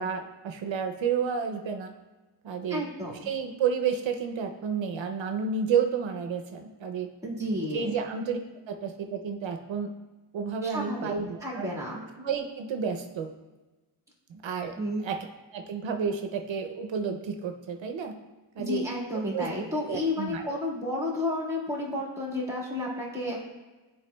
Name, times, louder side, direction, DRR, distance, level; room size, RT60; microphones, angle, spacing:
voice 1, 0.0-1.9 2.4-2.8 3.2-7.1 7.7-8.4 8.7-9.9 10.3-11.7 12.2-13.3 14.3-14.7 15.0-15.2 15.5-18.2 18.6-18.9 19.3-19.5 19.9-20.6, right 6 dB, 80° right, 5 dB, 0.6 m, -31 dB
voice 2, 2.7-3.3 7.2-8.0 10.6-11.1 11.4-12.0 14.8-15.0 18.6-23.4, left 1 dB, 5° right, -4 dB, 1.7 m, -31 dB
10.5 x 4.5 x 2.2 m, 1.2 s
wide cardioid pair, 110°, 45 cm